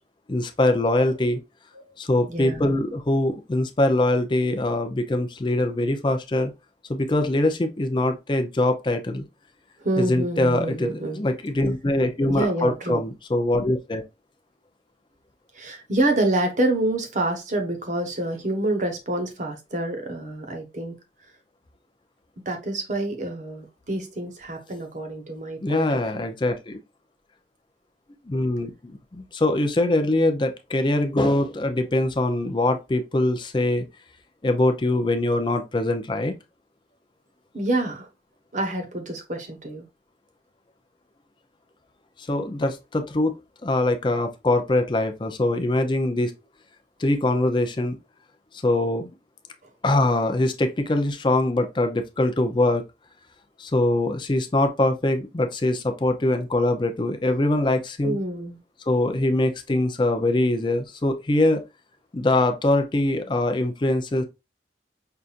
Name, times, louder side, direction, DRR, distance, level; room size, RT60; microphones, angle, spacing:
voice 1, 0.3-1.4 2.0-6.5 6.9-9.2 10.0-14.0 25.6-26.8 28.3-33.8 34.4-36.3 42.2-46.3 47.0-48.0 48.6-49.1 49.8-52.8 53.6-58.2 58.9-61.6 62.1-64.2, left 1 dB, 25° left, 0.5 m, -23 dB
voice 2, 2.3-2.7 9.8-11.2 12.2-13.0 15.5-20.9 22.4-26.0 37.5-38.1 38.5-39.9 58.0-58.6, right 1 dB, 45° right, 1.0 m, -27 dB
5.6 x 2.5 x 2.4 m
head